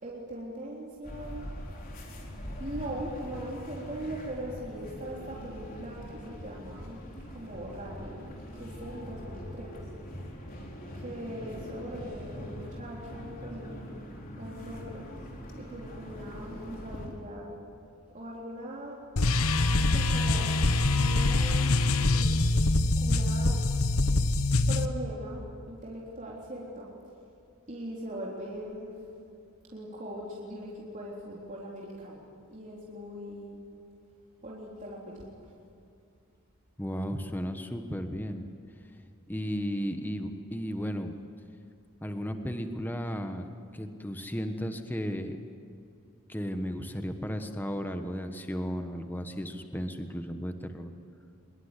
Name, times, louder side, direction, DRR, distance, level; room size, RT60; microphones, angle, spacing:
voice 1, 0.0-1.5 2.5-9.8 10.9-13.9 14.4-15.3 15.6-17.6 18.1-19.0 19.9-20.5 21.0-21.8 22.0-22.4 22.9-23.6 24.7-26.9 27.7-29.1 29.7-33.6 34.4-35.5, right 1 dB, 35° right, -4 dB, 3.7 m, -40 dB
sound 1, 1.0-17.1, equal, 40° left, 4.4 m, -42 dB
sound 2, 19.2-24.9, left 2 dB, 75° left, 1.2 m, -24 dB
voice 2, 36.8-38.5 39.3-41.2 42.0-45.4 46.3-50.9, equal, 10° left, 6 dB, 1.3 m, -34 dB
25.0 x 22.0 x 9.9 m, 2.5 s
head